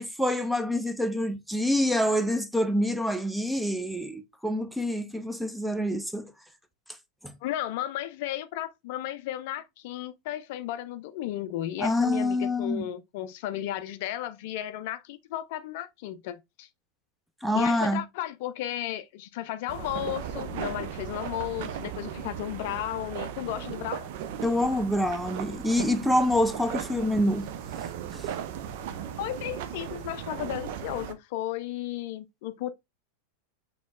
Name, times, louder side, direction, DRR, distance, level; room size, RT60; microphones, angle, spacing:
voice 1, 0.0-6.3 7.2-7.3 11.8-12.9 17.4-18.0 24.4-27.5 28.1-28.3, left 1 dB, 5° right, 0.6 m, -26 dB
voice 2, 7.4-16.7 17.5-24.1 29.2-32.7, left 13 dB, 55° left, 0.4 m, -34 dB
sound 1, 19.7-31.1, right 9 dB, 55° right, 0.5 m, -37 dB
6.1 x 2.8 x 2.3 m
figure-of-eight pair, 90°, 0 cm